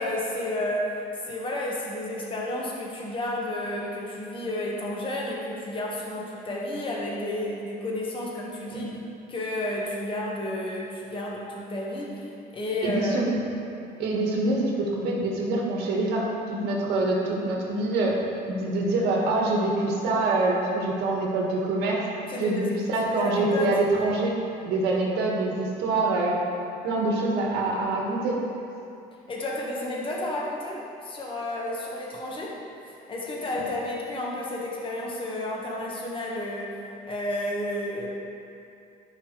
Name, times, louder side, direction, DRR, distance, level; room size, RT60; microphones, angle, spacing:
voice 1, 0.0-8.9 9.3-13.2 22.3-22.7 23.1-24.1 29.3-32.5 33.1-36.8 37.0-38.1, left 1 dB, 30° left, -3 dB, 1.6 m, -31 dB
voice 2, 12.8-13.4 14.0-18.2 18.5-22.0 22.4-24.3 24.6-26.4 26.8-28.4, right 2 dB, 80° right, -2 dB, 1.8 m, -25 dB
13.5 x 5.5 x 3.3 m, 2.6 s
cardioid pair, 110°, 17 cm